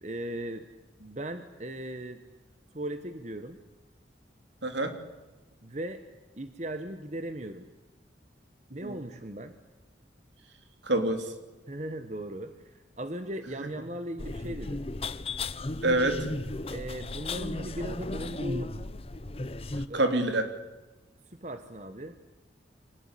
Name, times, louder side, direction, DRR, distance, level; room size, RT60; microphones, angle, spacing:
voice 1, 0.0-0.6 1.0-2.2 2.7-3.6 5.6-6.0 6.4-7.7 8.7-9.5 11.7-14.8 16.7-18.7 19.9-20.0 21.3-22.2, right 1 dB, 40° right, 9 dB, 1.4 m, -38 dB
voice 2, 4.6-4.9 8.7-9.0 10.8-11.3 15.8-16.2 19.9-20.5, right 1 dB, 70° right, 7 dB, 3.3 m, -26 dB
sound 1, 14.2-19.9, left 2 dB, 30° left, 0.8 m, -35 dB
25.5 x 19.0 x 10.0 m, 1.2 s
head